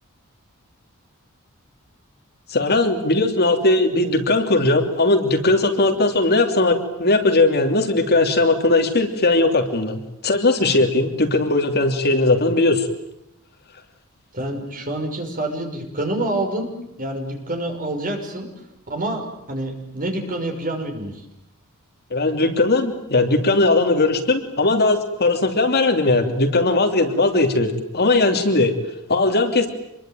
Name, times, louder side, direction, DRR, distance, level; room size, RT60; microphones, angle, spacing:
voice 1, 2.5-12.9 22.1-28.7 29.1-29.7, left 2 dB, 45° left, 5 dB, 3.0 m, -19 dB
voice 2, 14.3-16.7 17.0-18.5 18.9-21.1, right 1 dB, 40° right, 4 dB, 5.9 m, -27 dB
27.0 x 22.5 x 9.2 m, 0.81 s
head